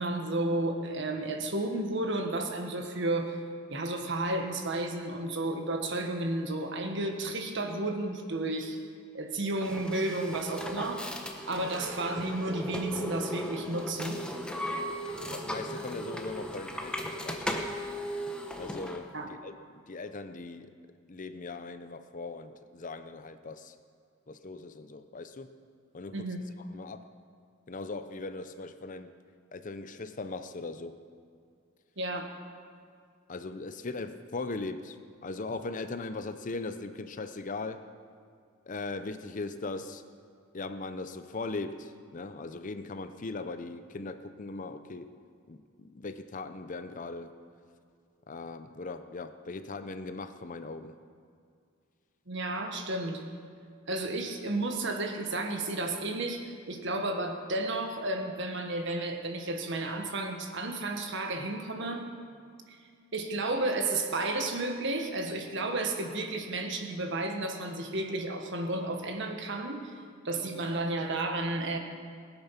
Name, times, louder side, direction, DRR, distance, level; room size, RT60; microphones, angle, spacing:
voice 1, 0.0-3.3 3.7-8.8 9.1-11.2 11.5-14.2 19.1-19.3 26.1-26.4 32.0-32.3 52.3-53.2 53.9-62.1 62.7-62.8 63.1-69.9 70.2-71.8, right 2 dB, 60° right, 4 dB, 1.5 m, -32 dB
sound 1, 9.6-19.0, equal, 5° left, 1.0 m, -37 dB
voice 2, 15.3-17.6 18.5-19.6 19.9-20.7 21.1-23.8 24.3-25.5 25.9-26.3 26.7-27.0 27.7-29.1 29.5-30.9 33.3-35.0 35.2-37.8 38.7-40.0 40.5-45.1 45.5-47.3 48.3-51.0, left 3 dB, 40° left, 10 dB, 0.6 m, -39 dB
19.5 x 8.8 x 5.8 m, 2.2 s
head